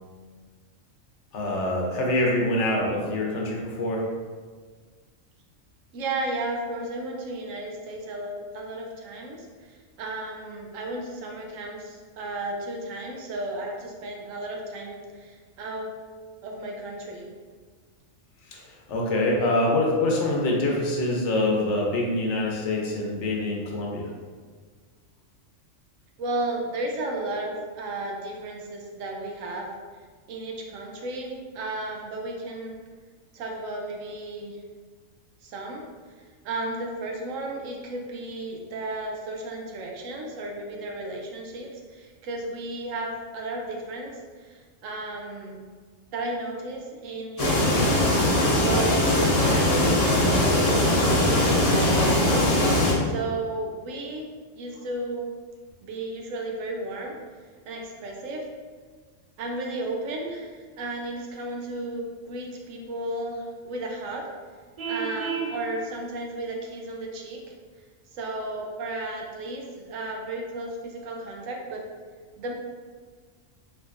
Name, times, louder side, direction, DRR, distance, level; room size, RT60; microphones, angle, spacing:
voice 1, 1.3-4.0 18.5-24.1, left 1 dB, 65° left, -1 dB, 1.0 m, -25 dB
voice 2, 5.9-15.9 16.4-17.3 26.2-29.7 30.3-32.8 33.3-34.6 35.4-35.8 36.4-44.1 44.4-45.6 46.1-48.0 48.3-50.8 51.2-52.5 53.0-54.2 54.5-55.3 55.8-57.1 57.7-58.4 59.4-64.3 64.9-67.4 68.1-71.8 72.4-72.5, right 2 dB, 75° right, 0 dB, 1.0 m, -34 dB
sound 1, 47.4-52.9, left 1 dB, 45° left, 0.5 m, -21 dB
Vehicle horn car horn honking, 64.8-65.6, right 6 dB, 45° right, 0.4 m, -30 dB
3.5 x 3.3 x 2.4 m, 1.5 s
omnidirectional pair, 1.4 m